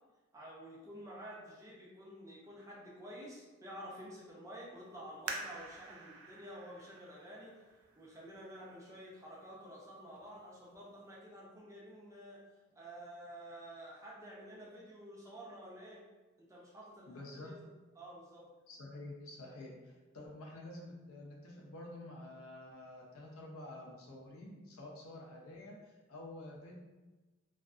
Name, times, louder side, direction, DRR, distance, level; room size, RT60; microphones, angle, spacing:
voice 1, 0.3-7.5 7.9-12.4 12.7-16.0 16.4-17.7 18.0-18.4, equal, 15° right, -5 dB, 0.5 m, -50 dB
sound 1, 5.3-8.6 9.2-9.3 10.0-10.3 10.7-10.8, right 3 dB, 90° right, 0.4 m, -47 dB
voice 2, 17.1-17.5 18.7-26.7, left 1 dB, 80° left, -2 dB, 0.6 m, -49 dB
2.5 x 2.5 x 2.3 m, 1.2 s
head